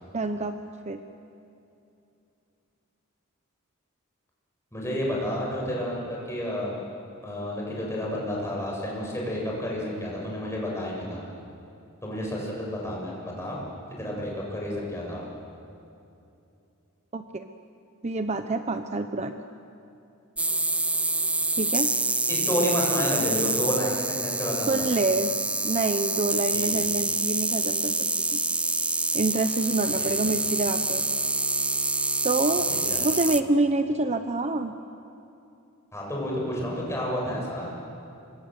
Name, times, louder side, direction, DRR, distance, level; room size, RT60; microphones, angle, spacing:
voice 1, 0.1-1.0 17.1-17.5 18.0-19.4 21.6-21.9 24.7-25.3 25.6-27.9 28.3-28.4 29.1-31.0 32.2-32.7 33.0-34.8, right 2 dB, 30° right, 8 dB, 0.8 m, -27 dB
voice 2, 4.7-6.8 7.2-11.2 12.0-13.6 14.0-15.3 22.2-24.7 26.5-26.8 30.0-30.3 32.7-33.0 35.9-37.8, equal, 15° left, -3 dB, 7.6 m, -30 dB
sound 1, 20.4-33.4, right 2 dB, 5° right, 0.5 m, -27 dB
27.0 x 24.5 x 7.9 m, 2.7 s
head